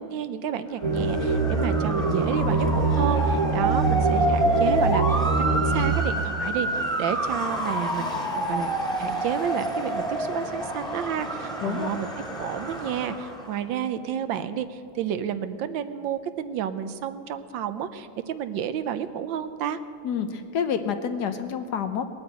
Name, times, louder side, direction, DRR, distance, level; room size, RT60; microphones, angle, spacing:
voice 1, 0.0-8.7 9.0-19.8, right 9 dB, 75° right, 11 dB, 1.4 m, -31 dB
sound 1, 0.8-6.0, right 3 dB, 40° right, 1.4 m, -24 dB
Motor vehicle (road) / Siren, 0.9-13.6, right 1 dB, ahead, 1.7 m, -28 dB
voice 2, 20.0-22.1, left 7 dB, 65° left, 8 dB, 1.2 m, -28 dB
19.5 x 8.9 x 8.1 m, 2.3 s
omnidirectional pair, 2.1 m